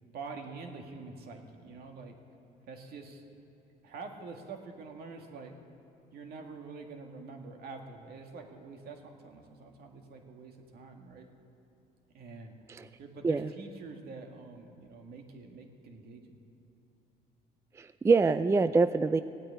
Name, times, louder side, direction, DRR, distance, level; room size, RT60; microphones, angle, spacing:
voice 1, 0.1-2.1 2.6-3.2 3.8-5.6 6.1-11.3 12.1-12.5 13.0-16.4, right 4 dB, 65° right, 3 dB, 1.9 m, -46 dB
voice 2, 17.8-19.2, right 4 dB, 15° right, 12 dB, 0.4 m, -25 dB
17.0 x 9.0 x 8.7 m, 3.0 s
cardioid pair, 110°, 17 cm